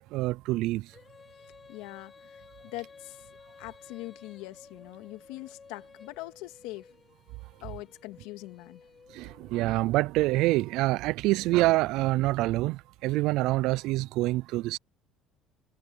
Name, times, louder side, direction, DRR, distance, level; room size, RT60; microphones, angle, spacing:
voice 1, 0.1-0.9 9.1-14.8, right 19 dB, 60° right, 0.3 m, -26 dB
Female singing, 0.9-10.0, left 5 dB, 20° left, 3.6 m, -54 dB
voice 2, 1.7-2.4 2.7-3.2 3.6-6.9 7.6-8.8, left 19 dB, 85° left, 2.0 m, -42 dB
cardioid pair, 165°, 0 cm